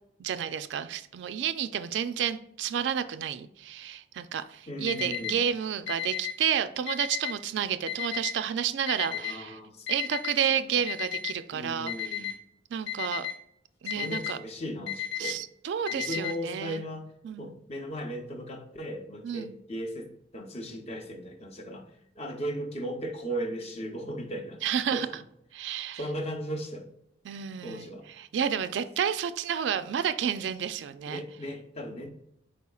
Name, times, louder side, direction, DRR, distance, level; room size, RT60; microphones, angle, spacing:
voice 1, 0.2-9.6 9.9-12.3 12.7-13.3 13.8-14.4 15.2-16.8 17.2-17.6 19.2-19.5 24.6-25.1 25.5-26.0 27.2-27.9 28.2-31.2, right 8 dB, 70° right, 11 dB, 0.3 m, -30 dB
voice 2, 4.7-5.4 9.1-9.9 11.5-12.3 13.8-15.4 15.9-17.1 17.4-21.8 22.2-24.6 24.9-25.2 25.9-26.9 27.6-28.1 31.1-32.1, equal, 35° left, 4 dB, 0.6 m, -37 dB
Alarm, 4.9-5.3 5.9-6.3 6.9-7.3 7.9-8.3 8.9-9.3 9.9-10.3 10.9-11.3 11.9-12.3 12.9-13.3 13.9-14.3 14.9-15.3 15.9-16.3, left 13 dB, 80° left, 1.3 m, -33 dB
4.3 x 4.2 x 2.3 m, 0.76 s
head